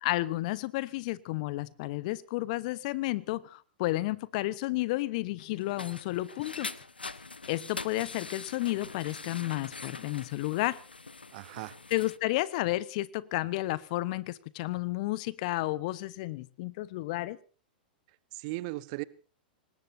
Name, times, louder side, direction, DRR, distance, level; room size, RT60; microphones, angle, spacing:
voice 1, 0.0-6.7 7.5-10.8 11.9-17.4, left 18 dB, 50° left, 1.1 m, -32 dB
sound 1, 5.4-12.2, left 3 dB, 90° left, 1.1 m, -43 dB
voice 2, 11.3-11.8 18.3-19.0, right 20 dB, 50° right, 1.1 m, -37 dB
25.5 x 20.0 x 2.8 m
figure-of-eight pair, 100°, 5 cm